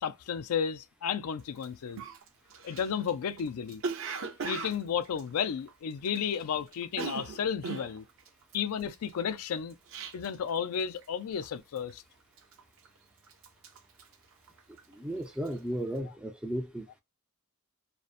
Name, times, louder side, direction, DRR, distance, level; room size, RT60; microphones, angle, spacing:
voice 1, 0.0-2.0 2.6-3.8 4.4-8.0 8.5-9.8 10.1-12.0, left 7 dB, 75° left, 0.4 m, -33 dB
Cough, 1.6-1.7 2.0-6.4 6.7-10.5 10.8-11.1 11.4-11.9 12.4-13.0 13.3-14.9 15.3-15.6, right 5 dB, 60° right, 0.6 m, -39 dB
voice 2, 14.9-16.9, equal, 5° right, 0.3 m, -35 dB
2.7 x 2.0 x 2.4 m
head